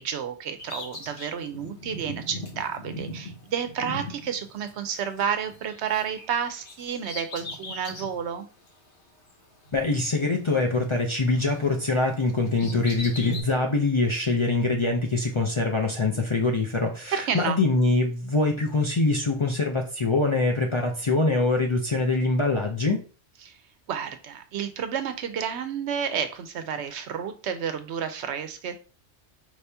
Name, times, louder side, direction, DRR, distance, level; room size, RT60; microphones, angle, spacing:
voice 1, 0.0-8.5 17.1-17.6 23.4-23.6 23.9-28.7, right 7 dB, 70° right, 8 dB, 0.8 m, -31 dB
Bird vocalization bird call bird song, 0.6-5.2 5.5-8.2 8.7-8.8 9.7-11.1 11.4-13.4, left 1 dB, 70° left, 1.3 m, -39 dB
voice 2, 9.7-23.0, left 3 dB, 40° left, 1 dB, 0.4 m, -24 dB
4.7 x 2.8 x 3.3 m, 0.37 s
omnidirectional pair, 1.2 m